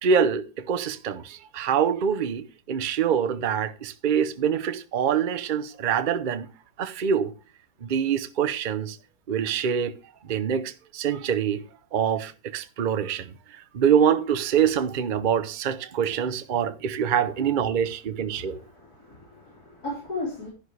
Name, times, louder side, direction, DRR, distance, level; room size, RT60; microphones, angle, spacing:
voice 1, 0.0-6.5 6.8-7.3 7.8-9.0 9.3-10.0 10.2-11.6 11.9-13.3 13.7-18.6, right 7 dB, 85° right, 0.4 m, -25 dB
voice 2, 18.7-20.5, left 2 dB, 50° left, 4.8 m, -35 dB
12.0 x 10.5 x 3.2 m
omnidirectional pair, 2.0 m